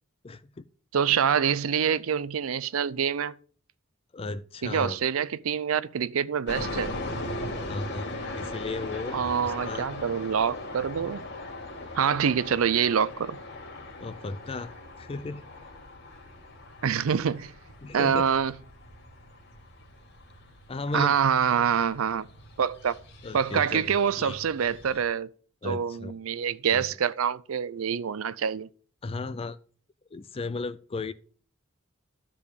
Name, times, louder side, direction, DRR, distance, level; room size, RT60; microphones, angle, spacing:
voice 1, 0.2-0.6 4.1-5.0 7.7-9.9 11.8-11.9 14.0-15.4 17.8-18.3 20.7-21.5 23.2-24.4 25.6-26.2 26.7-26.8 29.0-29.6 30.1-31.1, left 3 dB, 25° left, 0.4 m, -36 dB
voice 2, 0.9-3.3 4.6-6.9 9.1-11.2 12.0-13.4 16.8-17.5 17.9-18.5 20.9-22.3 22.6-23.0 23.3-25.3 25.6-28.7, right 7 dB, 70° right, 0.5 m, -26 dB
sound 1, 6.5-25.0, left 2 dB, 55° left, 2.4 m, -39 dB
12.5 x 5.0 x 6.9 m
head